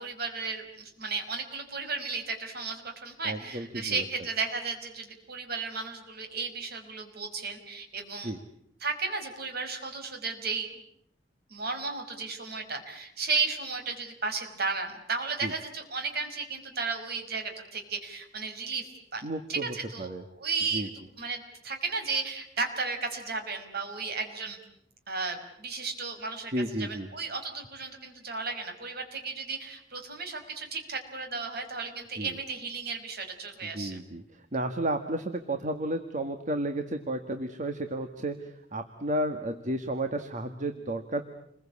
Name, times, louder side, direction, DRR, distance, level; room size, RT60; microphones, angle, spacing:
voice 1, 0.0-8.3 8.8-10.7 11.5-19.2 19.5-20.1 20.4-20.9 21.2-24.6 25.1-26.5 26.8-34.0, right 4 dB, 60° right, 5 dB, 5.4 m, -34 dB
voice 2, 3.2-4.0 8.2-8.4 15.4-15.5 19.2-20.2 20.7-20.9 26.5-27.1 32.2-32.4 33.6-41.3, right 1 dB, 45° right, 6 dB, 1.8 m, -32 dB
29.5 x 22.5 x 8.7 m, 0.72 s
head